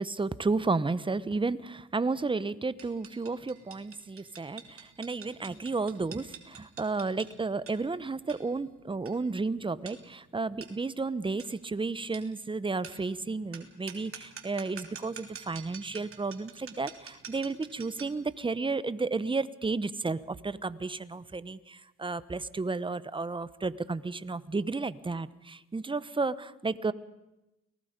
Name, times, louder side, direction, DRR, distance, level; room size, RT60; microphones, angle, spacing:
voice 1, 0.0-26.9, right 3 dB, 15° right, 16 dB, 0.9 m, -32 dB
sound 1, 2.8-18.3, right 6 dB, 45° right, 3.2 m, -49 dB
29.5 x 19.5 x 5.2 m, 0.95 s
cardioid pair, 90°, 30 cm